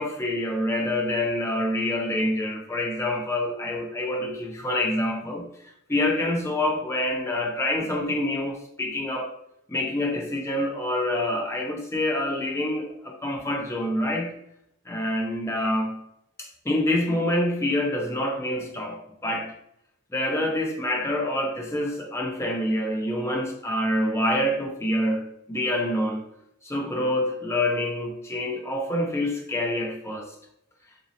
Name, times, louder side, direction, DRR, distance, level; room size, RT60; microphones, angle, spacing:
voice 1, 0.0-9.3 9.7-14.3 14.9-16.0 16.7-19.5 20.1-26.2 26.6-30.3, left 1 dB, 15° left, 1 dB, 0.5 m, -26 dB
3.9 x 2.8 x 2.6 m, 0.77 s
head